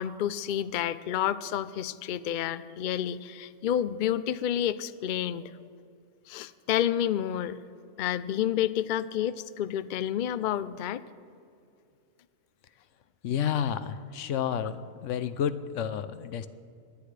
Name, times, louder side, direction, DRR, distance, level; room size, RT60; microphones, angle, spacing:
voice 1, 0.0-5.5 6.3-7.6 8.0-11.0, left 10 dB, 90° left, 13 dB, 0.4 m, -29 dB
voice 2, 13.2-16.5, left 8 dB, 70° left, 13 dB, 0.9 m, -30 dB
26.0 x 11.5 x 3.3 m, 2.4 s
omnidirectional pair, 1.4 m